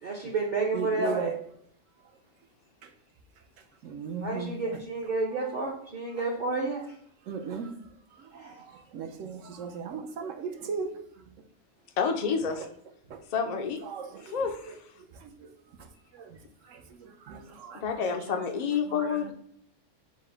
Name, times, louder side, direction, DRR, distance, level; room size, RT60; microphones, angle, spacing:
voice 1, 0.0-1.4 4.2-6.8 8.4-8.5, right 3 dB, 50° right, 0.6 m, -30 dB
voice 2, 0.7-1.4 3.8-4.5 7.3-7.7 8.4-8.5 8.9-10.9 13.9-14.4 17.0-18.1 19.0-19.1, right 6 dB, 85° right, 1.0 m, -36 dB
voice 3, 12.0-12.6 13.3-13.8 14.2-14.7 17.7-19.3, left 6 dB, 80° left, 0.3 m, -29 dB
4.7 x 2.1 x 4.4 m
omnidirectional pair, 1.3 m